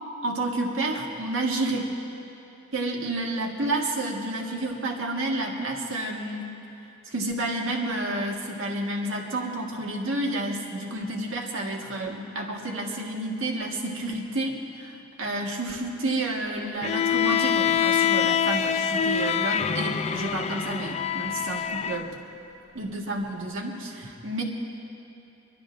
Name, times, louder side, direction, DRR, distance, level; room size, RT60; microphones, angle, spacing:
voice 1, 0.2-1.9 2.7-6.5 7.1-22.1 22.8-24.4, right 2 dB, 85° right, -1 dB, 1.7 m, -30 dB
Bowed string instrument, 16.8-22.0, left 8 dB, 35° left, 0.3 m, -25 dB
29.0 x 12.0 x 2.6 m, 2.9 s
head